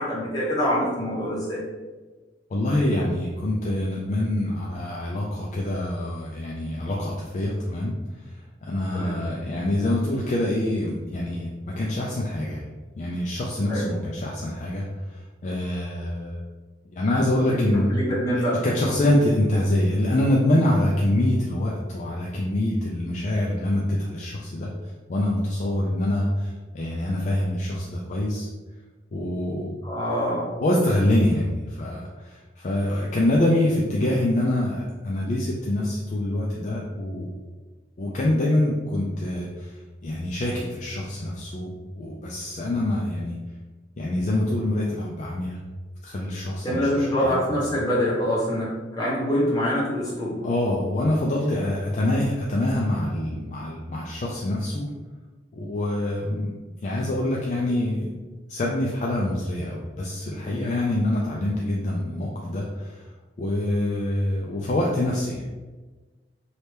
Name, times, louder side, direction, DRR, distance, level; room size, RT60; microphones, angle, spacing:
voice 1, 0.0-1.6 8.9-9.1 13.7-13.8 17.4-18.6 29.8-30.5 46.6-48.7 49.0-50.5, equal, 20° left, -6 dB, 1.1 m, -25 dB
voice 2, 2.5-16.4 16.9-18.0 18.6-28.5 29.1-29.8 30.6-37.3 38.0-41.7 42.0-43.4 44.0-45.6 46.0-47.7 50.4-54.9 55.5-56.5 56.8-58.1 58.5-63.1 63.4-65.5, left 1 dB, 45° left, -3 dB, 0.4 m, -25 dB
3.2 x 2.8 x 3.3 m, 1.3 s
head